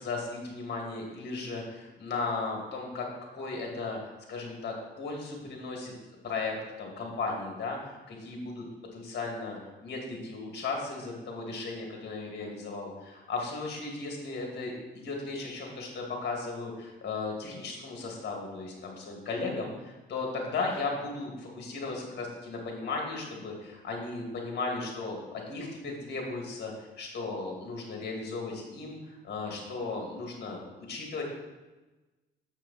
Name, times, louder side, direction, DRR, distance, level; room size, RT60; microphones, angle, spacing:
voice 1, 0.0-3.1 3.3-4.0 4.3-5.9 6.2-8.7 8.9-31.2, left 3 dB, 55° left, 0 dB, 2.3 m, -36 dB
6.9 x 6.4 x 4.2 m, 1.1 s
cardioid pair, 90°, 20 cm